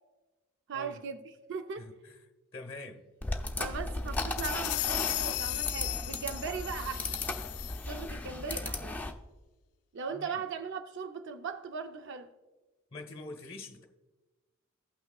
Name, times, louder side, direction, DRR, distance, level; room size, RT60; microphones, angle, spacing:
voice 1, 0.7-1.2 1.5-1.9 3.6-7.1 7.8-8.9 9.9-12.3, right 5 dB, 60° right, 0.5 m, -38 dB
voice 2, 1.8-2.2 2.5-3.0 3.5-3.6 10.1-10.4 12.9-13.8, left 2 dB, 25° left, 1.0 m, -45 dB
sound 1, 3.2-9.1, left 2 dB, 10° left, 0.5 m, -36 dB
sound 2, 4.1-8.1, left 16 dB, 90° left, 0.3 m, -35 dB
16.0 x 5.8 x 2.3 m
head